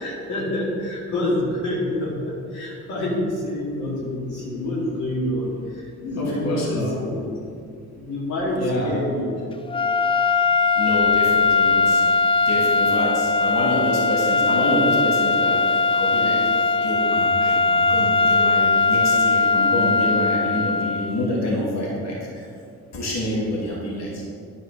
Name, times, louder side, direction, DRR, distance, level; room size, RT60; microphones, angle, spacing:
voice 1, 0.0-7.3 7.9-9.4, left 1 dB, 75° left, -6 dB, 2.5 m, -27 dB
voice 2, 6.1-7.0 8.5-8.9 10.8-12.0 12.5-15.6 15.9-16.4 16.8-22.5 22.9-24.2, left 1 dB, 60° left, -4 dB, 2.6 m, -27 dB
sound 1, 9.7-21.2, left 4 dB, 20° left, 0.5 m, -20 dB
10.5 x 4.9 x 6.4 m, 2.4 s
cardioid pair, 90°, 30 cm